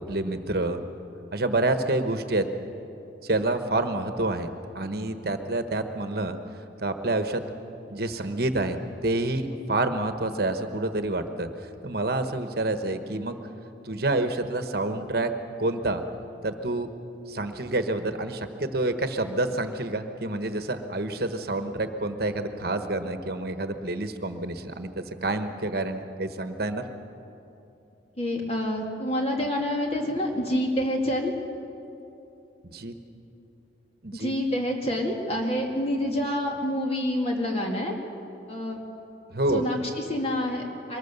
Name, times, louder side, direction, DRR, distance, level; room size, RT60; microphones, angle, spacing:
voice 1, 0.1-0.8 1.3-2.4 3.2-4.5 4.7-6.4 6.8-7.4 7.9-8.8 9.0-11.5 11.8-13.4 13.8-15.3 15.6-16.0 16.4-16.9 17.3-26.8 32.7-32.9 34.0-34.3 39.3-39.6, right 2 dB, 55° right, 8 dB, 1.2 m, -28 dB
voice 2, 28.2-31.3 34.1-37.9 38.5-38.8 39.5-41.0, left 1 dB, 35° left, 1 dB, 2.2 m, -27 dB
23.5 x 20.5 x 6.8 m, 2.8 s
head